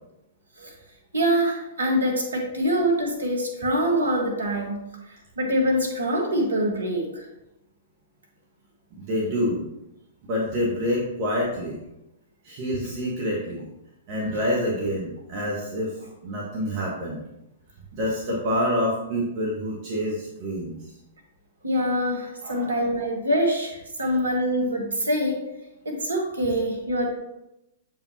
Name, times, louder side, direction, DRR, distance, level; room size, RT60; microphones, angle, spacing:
voice 1, 1.1-4.8 5.1-7.2 21.6-25.5 25.8-27.1, equal, 80° right, 1 dB, 1.6 m, -24 dB
voice 2, 8.9-9.7 10.2-11.8 12.4-13.7 14.1-15.9 16.2-17.2 17.9-20.8 22.4-22.9, equal, 40° right, -4 dB, 1.5 m, -27 dB
7.3 x 4.8 x 2.9 m, 0.89 s
figure-of-eight pair, 110°, 0 cm